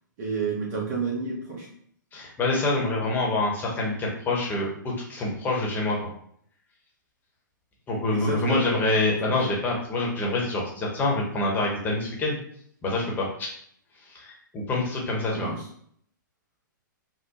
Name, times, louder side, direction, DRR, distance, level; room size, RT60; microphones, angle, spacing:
voice 1, 0.2-1.7 8.1-9.1 15.3-15.5, right 4 dB, 40° right, -3 dB, 1.1 m, -30 dB
voice 2, 2.1-6.0 7.9-12.4 12.8-13.5 14.1-15.5, left 2 dB, 15° left, -2 dB, 1.0 m, -26 dB
3.4 x 2.2 x 2.9 m, 0.65 s
figure-of-eight pair, 115°, 11 cm